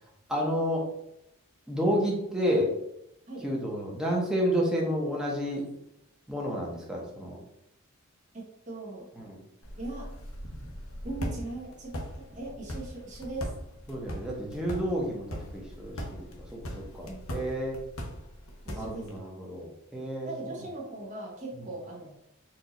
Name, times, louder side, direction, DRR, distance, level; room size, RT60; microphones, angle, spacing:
voice 1, 0.3-0.8 1.7-2.7 3.4-5.6 6.3-7.4 9.2-9.4 13.9-17.8 18.8-20.6, equal, 5° right, -3 dB, 1.0 m, -30 dB
voice 2, 8.3-9.1 9.8-10.1 11.0-12.0 12.3-13.5 17.1-17.3 18.6-19.1 20.2-22.2, right 2 dB, 35° right, -4 dB, 1.1 m, -39 dB
sound 1, 9.6-19.2, equal, 70° left, 0.9 m, -40 dB
4.5 x 2.7 x 3.9 m, 0.80 s
head